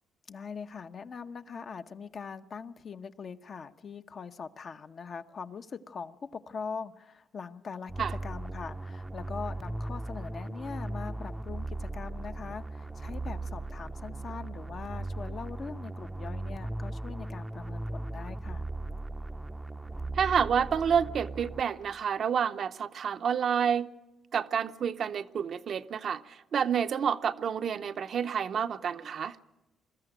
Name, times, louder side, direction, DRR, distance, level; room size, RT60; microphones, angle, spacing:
voice 1, 0.3-18.7, left 5 dB, 50° left, 0.8 m, -42 dB
sound 1, 7.9-22.0, right 2 dB, 15° right, 0.6 m, -38 dB
voice 2, 20.1-23.9 24.3-29.4, right 7 dB, 60° right, 0.7 m, -29 dB
22.5 x 13.5 x 9.1 m
cardioid pair, 90°, 0 cm